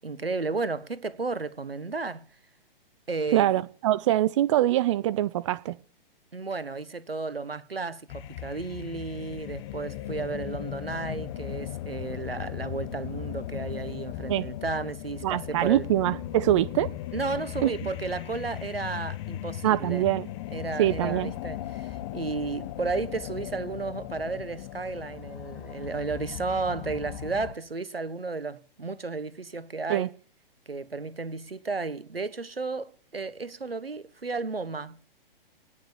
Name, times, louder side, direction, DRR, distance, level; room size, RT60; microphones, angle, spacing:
voice 1, 0.0-2.3 3.1-3.6 6.3-15.9 17.1-20.1 20.5-30.1 30.7-35.1, right 4 dB, 80° right, 1.5 m, -33 dB
voice 2, 3.3-5.8 14.3-14.5 15.2-16.9 17.6-17.7 19.6-20.3 20.8-21.3 29.9-30.1, right 13 dB, 30° right, 0.6 m, -24 dB
sound 1, 8.1-27.5, left 13 dB, 30° left, 1.1 m, -37 dB
18.5 x 7.0 x 8.6 m
figure-of-eight pair, 120°, 29 cm